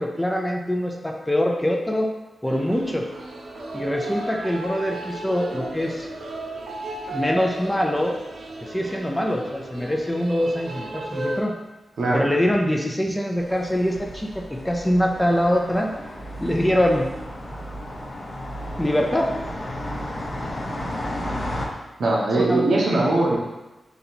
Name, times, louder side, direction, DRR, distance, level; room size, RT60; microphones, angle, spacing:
voice 1, 0.0-2.1 2.4-3.1 3.7-6.1 7.1-8.2 8.6-11.5 12.1-15.9 16.4-17.1 18.8-19.3 22.4-22.8, equal, 5° left, 1 dB, 0.4 m, -23 dB
sound 1, 2.5-11.4, right 1 dB, 70° right, 0.5 m, -34 dB
sound 2, 13.4-21.7, left 1 dB, 35° left, 0.7 m, -33 dB
voice 2, 22.0-23.4, right 2 dB, 90° right, -2 dB, 0.9 m, -20 dB
3.9 x 2.8 x 4.1 m, 1.0 s
wide cardioid pair, 175°, 0 cm